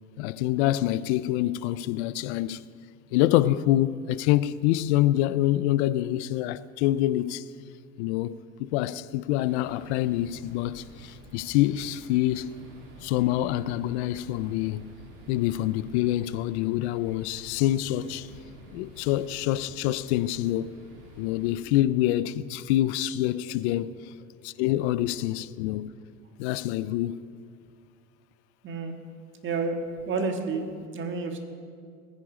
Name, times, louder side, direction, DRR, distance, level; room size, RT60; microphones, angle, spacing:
voice 1, 0.2-2.7 3.1-7.5 8.0-12.5 13.0-14.9 15.3-18.3 18.7-20.7 21.2-23.9 24.4-25.9 26.4-27.2, left 14 dB, 80° left, 0.6 m, -26 dB
sound 1, 9.4-21.6, right 2 dB, 90° right, 3.8 m, -50 dB
voice 2, 29.4-31.4, right 4 dB, 35° right, 1.7 m, -30 dB
20.5 x 9.9 x 5.0 m
supercardioid pair, 120°, 33 cm